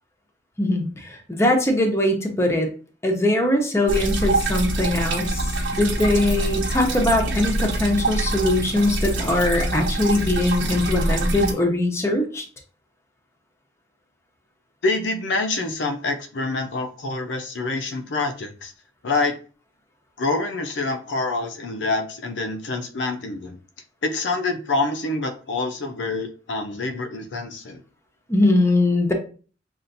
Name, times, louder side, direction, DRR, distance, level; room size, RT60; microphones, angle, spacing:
voice 1, 0.6-2.7 3.0-12.4 28.3-29.1, left 1 dB, 15° left, 2 dB, 0.7 m, -21 dB
sound 1, 3.9-11.5, right 2 dB, 75° right, 1.2 m, -25 dB
voice 2, 14.8-18.7 19.0-19.4 20.2-23.6 24.0-27.8, left 3 dB, 75° left, 6 dB, 0.6 m, -26 dB
5.5 x 2.5 x 2.6 m, 0.38 s
head